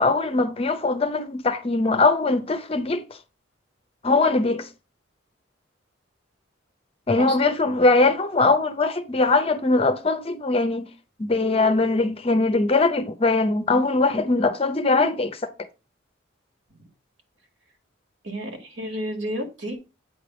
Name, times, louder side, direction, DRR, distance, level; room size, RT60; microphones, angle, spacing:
voice 1, 0.0-3.0 4.0-4.7 7.1-10.9 11.2-15.4, left 3 dB, 30° left, 0.6 m, -21 dB
voice 2, 7.2-7.6 16.7-16.8 18.2-19.8, equal, 65° right, 2.0 m, -32 dB
8.7 x 3.3 x 6.0 m
head